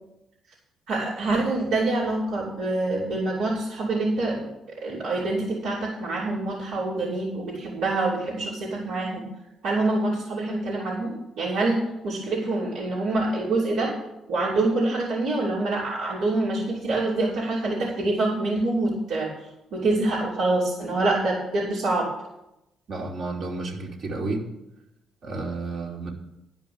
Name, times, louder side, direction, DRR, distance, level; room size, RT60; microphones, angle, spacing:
voice 1, 0.9-4.5 4.8-9.2 9.6-13.9 14.3-19.3 19.7-22.1, right 2 dB, 85° right, -7 dB, 3.0 m, -26 dB
voice 2, 22.9-24.4 25.2-26.1, right 3 dB, 65° right, -1 dB, 2.7 m, -31 dB
11.5 x 5.3 x 8.6 m, 0.90 s
cardioid pair, 90°, 0 cm